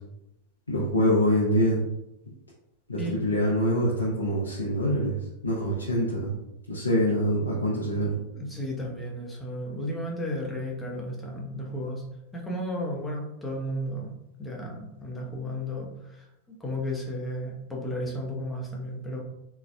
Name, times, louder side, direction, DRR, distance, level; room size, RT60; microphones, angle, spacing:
voice 1, 0.7-1.8 2.9-5.1 5.4-6.3 6.7-8.2, equal, 80° left, -6 dB, 0.8 m, -25 dB
voice 2, 8.3-12.0 12.3-14.1 14.4-19.2, equal, 10° left, -2 dB, 0.9 m, -33 dB
3.8 x 3.4 x 2.2 m, 0.87 s
figure-of-eight pair, 90°, 0 cm